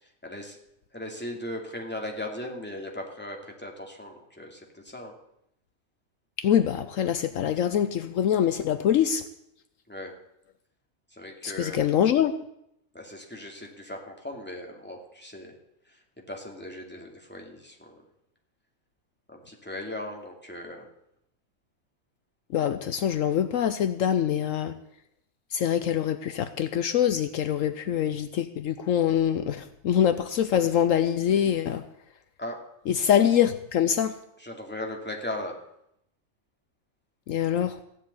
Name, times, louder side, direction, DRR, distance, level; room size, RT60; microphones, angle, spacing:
voice 1, 0.0-0.6 0.9-5.1 9.9-10.1 11.1-11.9 12.9-15.6 15.9-16.0 16.3-18.0 19.3-20.9 32.4-32.6 34.4-35.6, left 1 dB, 5° left, 1 dB, 2.5 m, -38 dB
voice 2, 6.4-9.2 11.4-12.3 22.5-24.7 25.5-31.8 32.9-34.1 37.3-37.8, left 9 dB, 70° left, 11 dB, 1.1 m, -24 dB
15.5 x 7.4 x 9.6 m, 0.78 s
omnidirectional pair, 1.4 m